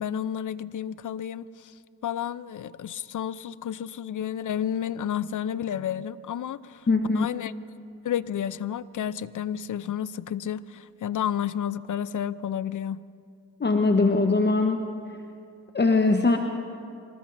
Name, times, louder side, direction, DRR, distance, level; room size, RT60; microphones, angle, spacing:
voice 1, 0.0-1.7 2.0-6.9 7.1-7.5 8.0-13.0, left 9 dB, 45° left, 17 dB, 0.6 m, -31 dB
voice 2, 6.9-7.3 13.6-14.9 15.7-16.4, left 3 dB, 25° left, 4 dB, 1.1 m, -21 dB
27.5 x 19.0 x 2.7 m, 2.6 s
supercardioid pair, 55°, 45 cm